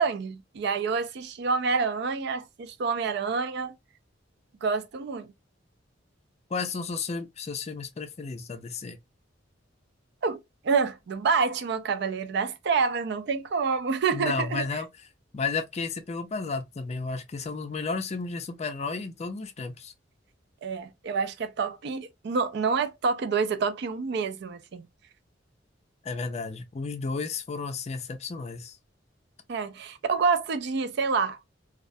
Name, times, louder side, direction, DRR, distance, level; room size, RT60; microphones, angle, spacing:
voice 1, 0.0-3.7 4.6-5.3 10.2-14.7 20.6-24.9 29.5-31.4, right 5 dB, 60° right, 0.4 m, -27 dB
voice 2, 6.5-9.0 14.1-14.9 15.3-19.9 26.0-28.8, left 4 dB, 35° left, 0.4 m, -33 dB
2.3 x 2.1 x 2.6 m
head